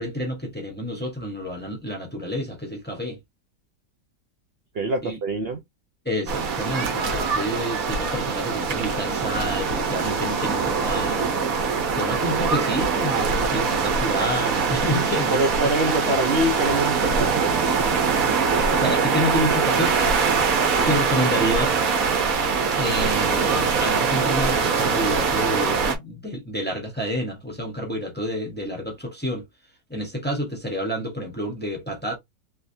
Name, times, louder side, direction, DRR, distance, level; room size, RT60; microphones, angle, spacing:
voice 1, 0.0-3.2 5.0-5.2 6.0-11.3 12.0-15.5 15.9-16.1 18.7-20.0 20.8-21.7 22.8-29.4 29.9-32.2, equal, 10° left, 0.8 m, -29 dB
voice 2, 4.7-5.6 15.3-17.5 20.6-21.0, right 1 dB, 80° right, 0.5 m, -25 dB
sound 1, 6.3-26.0, right 5 dB, 60° right, 1.3 m, -23 dB
3.5 x 3.1 x 2.6 m
omnidirectional pair, 1.9 m